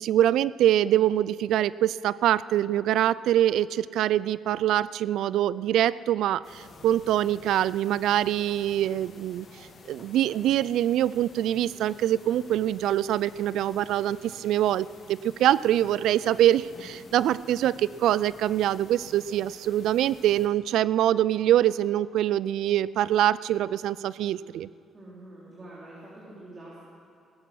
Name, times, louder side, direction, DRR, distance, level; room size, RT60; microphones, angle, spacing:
voice 1, 0.0-9.5 9.9-24.7, right 12 dB, 80° right, 19 dB, 0.3 m, -24 dB
sound 1, 6.4-20.5, left 3 dB, 50° left, 2.3 m, -51 dB
voice 2, 24.9-26.9, right 1 dB, 35° right, -6 dB, 3.2 m, -46 dB
18.0 x 10.0 x 6.2 m, 2.6 s
cardioid pair, 105°, 0 cm